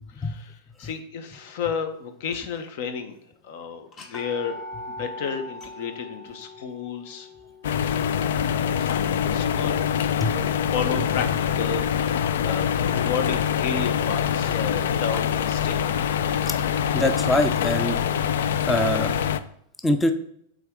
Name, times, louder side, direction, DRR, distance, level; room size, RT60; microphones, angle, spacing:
voice 1, 0.1-3.2 3.4-7.3 7.8-8.0 8.8-9.8 10.2-11.3 11.6-16.0, left 6 dB, 60° left, 7 dB, 1.0 m, -32 dB
sound 1, 2.3-2.8 3.2-3.3 3.9-9.8, left 1 dB, 25° left, 0.9 m, -41 dB
sound 2, 7.6-19.4, left 8 dB, 75° left, 0.4 m, -24 dB
voice 2, 16.9-18.0 18.7-19.2 19.8-20.1, left 1 dB, 10° left, 7 dB, 0.5 m, -23 dB
8.1 x 3.6 x 3.7 m, 0.69 s
supercardioid pair, 135°, 0 cm